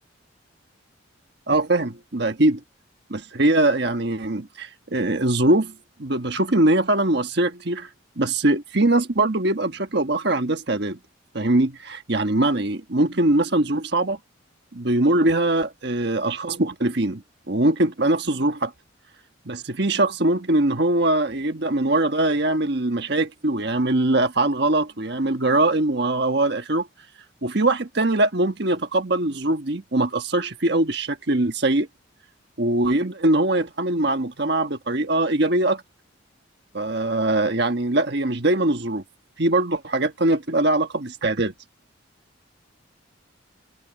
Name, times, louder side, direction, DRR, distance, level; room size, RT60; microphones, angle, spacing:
voice 1, 1.5-2.6 3.1-5.7 6.0-7.9 8.2-11.0 11.3-14.2 14.7-18.7 19.4-26.9 27.4-31.9 32.6-35.8 36.7-39.0 39.4-41.5, right 2 dB, 55° right, 1.4 m, -22 dB
head